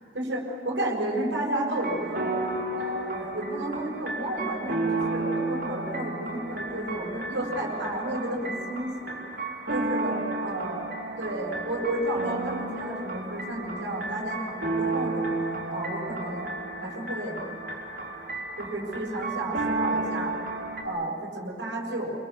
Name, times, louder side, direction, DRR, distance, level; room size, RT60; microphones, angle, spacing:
voice 1, 0.1-2.3 2.7-9.2 9.7-10.8 11.2-15.3 15.7-16.5 16.8-17.4 18.6-20.3 20.8-22.1, right 1 dB, 85° right, -2 dB, 7.2 m, -32 dB
sound 1, 1.7-20.8, right 2 dB, 55° right, 3.8 m, -32 dB
28.5 x 25.0 x 7.3 m, 2.6 s
head